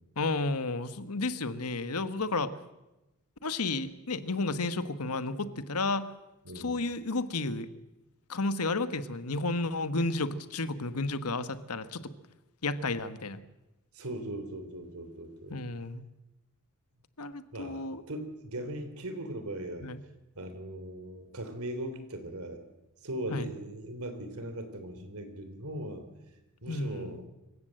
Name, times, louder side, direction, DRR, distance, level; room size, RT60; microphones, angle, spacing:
voice 1, 0.2-2.5 3.4-6.0 6.5-7.7 8.3-12.0 12.6-13.4 15.5-16.0 17.2-18.0 19.8-20.0 23.3-23.5 26.7-27.2, left 3 dB, 85° left, 12 dB, 1.3 m, -32 dB
voice 2, 6.4-6.8 13.9-15.6 17.5-19.9 20.3-22.6 23.0-26.1 26.6-27.2, right 1 dB, 70° right, 8 dB, 3.6 m, -39 dB
26.0 x 15.5 x 7.8 m, 1.0 s
head